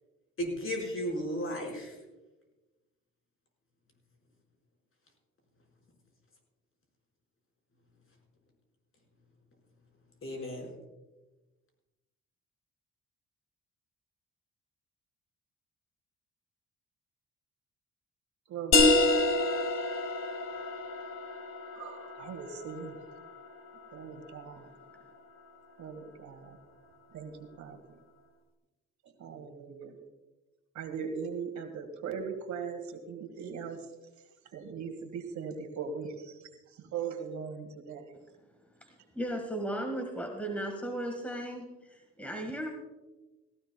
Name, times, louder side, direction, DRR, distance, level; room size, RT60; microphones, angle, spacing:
voice 1, 0.4-1.9 10.2-10.7, equal, 45° left, 0 dB, 5.0 m, -34 dB
voice 2, 18.5-19.3 21.8-23.0 23.9-24.6 25.8-26.6 27.1-27.3 27.6-27.8 29.2-29.9 30.8-33.8 34.5-36.4 36.9-38.1, right 6 dB, 70° right, 6 dB, 2.0 m, -39 dB
sound 1, 18.7-24.1, left 2 dB, 60° left, 2.0 m, -28 dB
voice 3, 38.8-42.7, right 1 dB, 5° left, 3 dB, 1.6 m, -36 dB
17.5 x 15.5 x 2.3 m, 1.1 s
cardioid pair, 90°, 30 cm